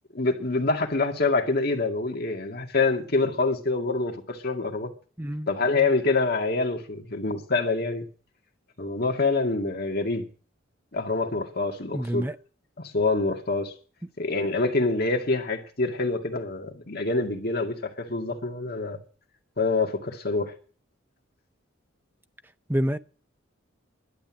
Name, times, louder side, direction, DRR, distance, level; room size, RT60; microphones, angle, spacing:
voice 1, 0.1-4.9 5.5-8.0 8.8-10.3 10.9-12.3 12.8-13.7 14.2-19.0 19.6-20.5, left 3 dB, 50° left, 2.1 m, -26 dB
voice 2, 5.2-5.5 11.9-12.4 22.7-23.0, equal, 10° right, 0.6 m, -27 dB
11.5 x 8.1 x 9.0 m
head